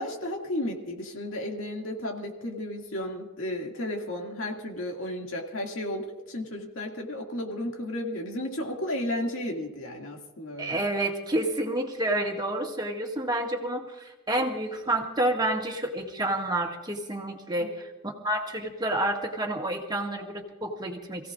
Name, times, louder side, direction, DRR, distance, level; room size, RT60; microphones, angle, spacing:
voice 1, 0.0-10.8 17.5-17.7, left 1 dB, 65° left, 1 dB, 2.3 m, -33 dB
voice 2, 10.6-21.3, right 1 dB, 20° right, 1 dB, 2.0 m, -29 dB
28.0 x 16.5 x 2.5 m, 1.1 s
head